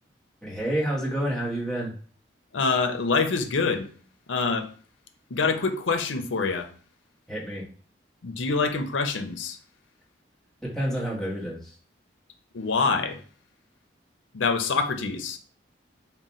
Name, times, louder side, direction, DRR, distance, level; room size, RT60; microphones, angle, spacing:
voice 1, 0.4-1.9 7.3-7.6 10.6-11.7, right 1 dB, 5° left, 1.1 m, -29 dB
voice 2, 2.5-3.9 4.3-4.7 5.3-6.7 8.2-9.6 12.5-13.2 14.3-15.4, left 4 dB, 85° left, 0.6 m, -25 dB
3.8 x 2.2 x 4.1 m
head